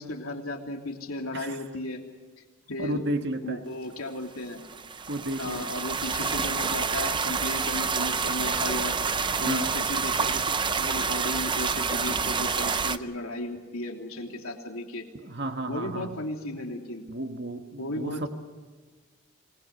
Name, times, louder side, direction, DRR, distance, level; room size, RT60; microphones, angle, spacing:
voice 1, 0.0-2.0 2.7-3.0 3.4-4.6 5.4-9.0 9.4-15.1 15.7-17.0 17.8-18.3, left 1 dB, 80° left, 2 dB, 3.3 m, -35 dB
voice 2, 2.8-3.6 5.1-5.6 9.4-9.7 15.2-16.1 17.1-18.3, right 1 dB, 50° right, 6 dB, 1.7 m, -32 dB
sound 1, 4.6-13.0, right 5 dB, 20° right, 0.6 m, -28 dB
27.0 x 21.0 x 6.7 m, 1.4 s
head